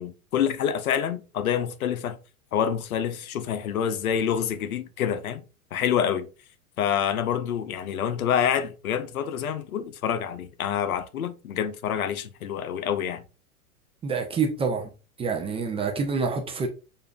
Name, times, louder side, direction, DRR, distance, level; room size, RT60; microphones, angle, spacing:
voice 1, 0.0-2.2 2.5-5.4 5.7-6.3 6.8-13.2, left 8 dB, 70° left, 0.8 m, -27 dB
voice 2, 14.0-14.9 15.2-16.7, right 5 dB, 15° right, 0.5 m, -27 dB
6.7 x 2.7 x 2.3 m
figure-of-eight pair, 100°, 45 cm